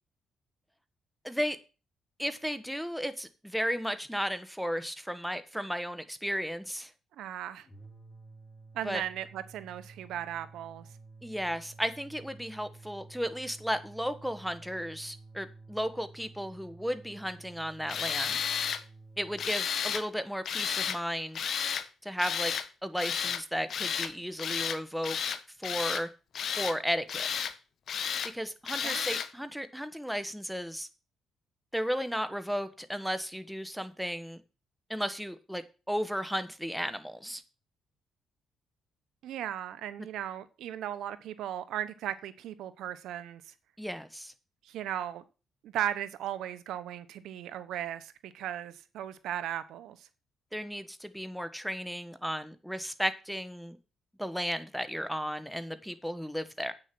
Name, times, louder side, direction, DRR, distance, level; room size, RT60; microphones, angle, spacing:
voice 1, 1.2-1.6 2.2-6.9 8.8-9.0 11.2-18.4 19.2-21.5 22.0-22.5 22.8-25.2 25.6-26.1 26.6-27.3 28.3-30.9 31.7-34.4 34.9-37.4 43.8-44.3 50.5-53.8 54.2-56.7, equal, ahead, 1.2 m, -34 dB
voice 2, 7.2-7.7 8.7-10.9 28.8-29.1 39.2-43.4 44.6-45.2 45.6-50.0, right 11 dB, 85° right, 0.9 m, -37 dB
sound 1, 7.6-19.5, right 3 dB, 30° left, 2.0 m, -52 dB
Tools, 17.9-18.8 19.4-20.0 20.5-21.0 21.3-21.9 22.2-22.7 23.0-23.4 23.7-24.1 24.4-24.8 25.0-26.0 26.3-26.8 27.1-27.5 27.9-28.3 28.7-29.3, left 7 dB, 60° left, 1.1 m, -32 dB
8.6 x 6.6 x 6.0 m
cardioid pair, 90°, 0 cm